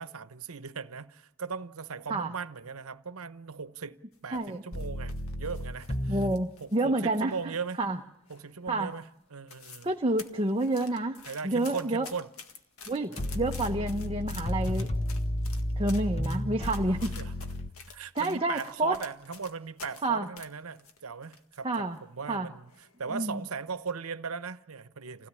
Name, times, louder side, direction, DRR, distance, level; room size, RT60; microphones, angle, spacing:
voice 1, 0.0-6.2 6.6-7.8 8.3-9.9 11.3-12.3 13.1-13.2 17.0-17.5 17.9-25.3, right 5 dB, 85° right, 0.9 m, -38 dB
sound 1, 4.1-6.9 7.1-7.9 8.3-8.6 9.0-9.1 9.3-9.9 10.2-20.1 20.4-21.6 21.9-22.0 22.7-23.0 23.4-23.6, left 5 dB, 85° left, 1.8 m, -49 dB
voice 2, 4.3-4.6 6.1-7.3 7.8-8.0 8.7-8.9 9.8-11.2 11.4-12.1 12.9-14.9 15.8-17.1 18.1-19.0 20.0-20.3 21.6-22.0 22.3-22.5 23.1-23.4, right 2 dB, 25° right, 0.8 m, -29 dB
sound 2, 4.7-6.4 13.2-17.7, left 1 dB, 30° left, 0.9 m, -32 dB
27.5 x 17.0 x 9.7 m
head